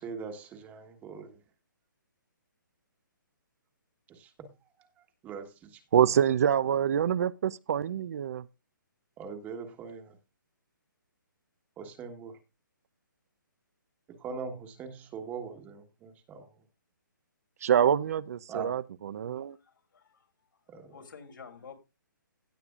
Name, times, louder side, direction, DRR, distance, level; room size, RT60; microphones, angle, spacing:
voice 1, 0.0-1.4 4.1-4.5 5.2-5.8 9.2-10.2 11.8-12.4 14.2-16.5 18.5-18.7 20.7-20.9, right 5 dB, 15° right, 1.3 m, -41 dB
voice 2, 5.9-8.5 17.6-19.6, right 9 dB, 45° right, 0.5 m, -26 dB
voice 3, 19.6-20.2 20.9-21.8, left 6 dB, 75° left, 3.4 m, -49 dB
17.0 x 7.9 x 2.4 m
hypercardioid pair, 160°, 11 cm